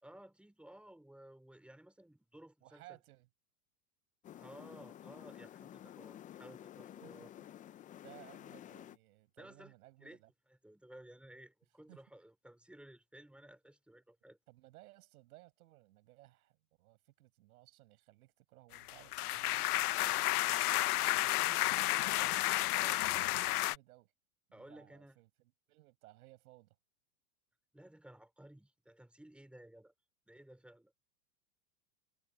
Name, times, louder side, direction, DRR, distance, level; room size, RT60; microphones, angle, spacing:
voice 1, 0.0-2.8 4.3-7.3 9.4-9.7 10.0-10.2 10.5-14.4 22.2-22.4 22.8-23.0 24.5-25.2 27.7-29.9 30.3-30.9, right 1 dB, ahead, 3.2 m, -56 dB
voice 2, 2.6-3.3 7.0-7.5 8.0-10.3 11.9-12.0 14.5-19.9 20.6-22.4 23.0-24.1 24.5-26.8, right 17 dB, 75° right, 6.8 m, -60 dB
sound 1, 4.2-9.0, left 11 dB, 20° left, 0.5 m, -52 dB
sound 2, 18.7-23.8, left 17 dB, 80° left, 0.9 m, -32 dB
supercardioid pair, 125°, 44 cm